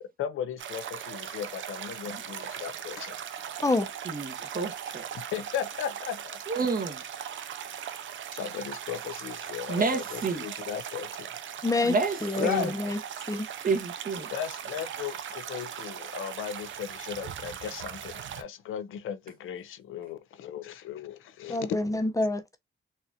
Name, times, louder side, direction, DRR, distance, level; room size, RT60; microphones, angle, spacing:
voice 1, 0.2-3.2 5.1-6.4 8.3-11.3 12.4-12.7 14.3-21.8, left 9 dB, 85° left, 0.5 m, -36 dB
sound 1, 0.6-18.4, right 9 dB, 75° right, 0.5 m, -39 dB
voice 2, 4.1-5.0 6.5-7.0 9.7-10.4 11.8-12.7 13.6-14.3, right 4 dB, 45° right, 1.0 m, -29 dB
voice 3, 11.6-11.9 12.2-13.0 13.3-13.5 21.5-22.6, left 2 dB, 15° left, 0.6 m, -27 dB
4.1 x 2.4 x 2.6 m
cardioid pair, 85°, 20 cm